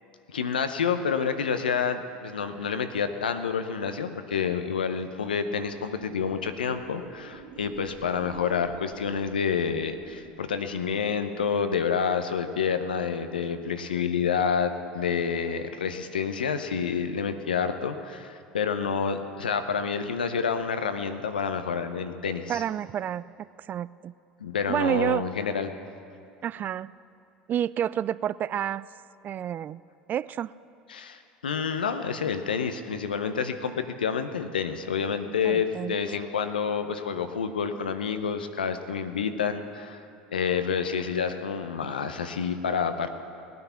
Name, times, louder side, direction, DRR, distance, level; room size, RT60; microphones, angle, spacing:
voice 1, 0.3-22.6 24.4-25.7 30.9-40.0 40.3-43.1, left 6 dB, 90° left, 9 dB, 0.7 m, -28 dB
sound 1, 5.4-11.3, right 5 dB, 60° right, 2.1 m, -50 dB
voice 2, 22.5-23.2 23.7-24.1 24.7-25.3 26.4-26.9 27.5-28.9 29.2-29.8 30.1-30.5 35.4-36.0, right 10 dB, 40° right, 18 dB, 0.3 m, -29 dB
18.5 x 9.4 x 5.7 m, 2.5 s
hypercardioid pair, 75°, 5 cm